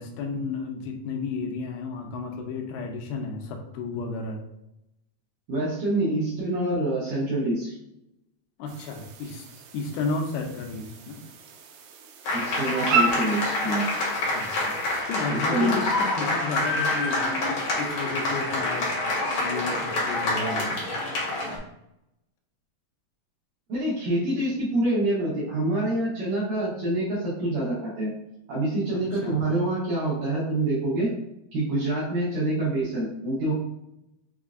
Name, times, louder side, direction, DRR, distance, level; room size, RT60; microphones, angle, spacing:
voice 1, 0.0-4.4 8.6-9.5 9.7-11.2 14.3-14.8 15.1-19.0 19.4-20.8 28.9-29.4, left 4 dB, 80° left, 3 dB, 2.5 m, -33 dB
voice 2, 5.5-7.8 12.3-13.9 14.9-15.0 15.3-15.9 23.7-28.1 28.5-31.1 31.5-33.5, right 1 dB, 65° right, -9 dB, 2.4 m, -26 dB
sound 1, 8.7-15.0, right 4 dB, 90° right, 2.7 m, -33 dB
sound 2, 12.2-21.6, left 2 dB, 65° left, 1.6 m, -27 dB
6.3 x 2.7 x 2.5 m, 0.84 s
omnidirectional pair, 4.6 m